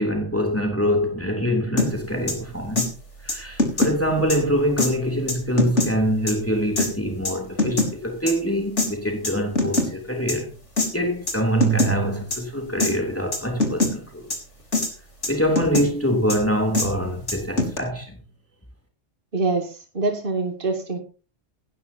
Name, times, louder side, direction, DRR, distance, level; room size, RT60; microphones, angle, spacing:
voice 1, 0.0-2.9 3.2-10.5 10.9-14.3 15.3-18.2, equal, 10° left, 3.1 m, -24 dB
sound 1, 1.8-1.9 2.3-2.4 2.8-2.9 3.3-3.9 4.3-4.4 4.8-4.9 5.3-5.9 6.3-6.4 6.8-6.9 7.3-7.9 8.3-8.4 8.8-8.9 9.2-9.9 10.3-10.4 10.8-10.9 11.3-11.4 11.6-11.9 12.3-12.4 12.8-12.9 13.3-13.9 14.3-14.4 14.7-14.9 15.2-15.9 16.3-16.4 16.7-16.9 17.3-17.8, left 2 dB, 65° left, 4.1 m, -22 dB
voice 2, 19.3-21.0, right 3 dB, 45° right, 2.7 m, -25 dB
17.5 x 14.5 x 2.8 m
omnidirectional pair, 1.3 m